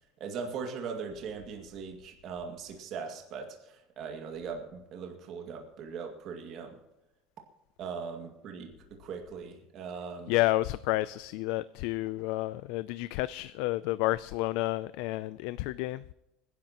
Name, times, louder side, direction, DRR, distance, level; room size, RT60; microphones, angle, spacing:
voice 1, 0.2-6.8 7.8-10.3, right 5 dB, 45° right, 2.1 m, -40 dB
voice 2, 10.3-16.0, left 18 dB, 75° left, 0.4 m, -30 dB
25.5 x 11.0 x 3.0 m
cardioid pair, 155°, 0 cm